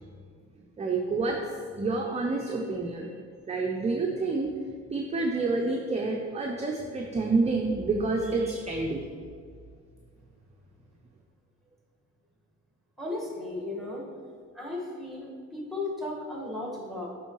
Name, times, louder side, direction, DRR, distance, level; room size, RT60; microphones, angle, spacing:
voice 1, 0.8-1.4 1.8-3.1 3.5-4.5 4.9-9.0, right 3 dB, 20° right, 0 dB, 0.5 m, -28 dB
voice 2, 13.0-14.1 14.5-17.1, left 2 dB, ahead, -2 dB, 1.5 m, -35 dB
8.8 x 3.7 x 3.0 m, 2.1 s
cardioid pair, 90°, 30 cm